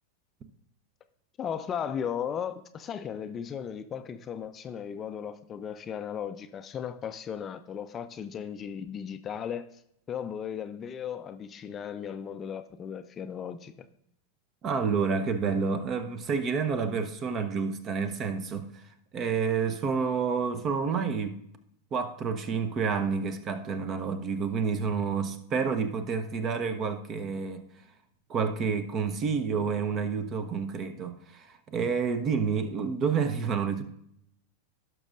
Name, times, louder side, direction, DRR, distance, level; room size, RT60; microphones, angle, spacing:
voice 1, 1.4-9.8 10.1-13.7, left 8 dB, 25° left, 0.5 m, -36 dB
voice 2, 14.6-18.8 19.1-21.4 21.9-27.6 28.3-33.8, right 5 dB, 30° right, 0.8 m, -29 dB
16.5 x 6.2 x 2.5 m
figure-of-eight pair, 90°, 0 cm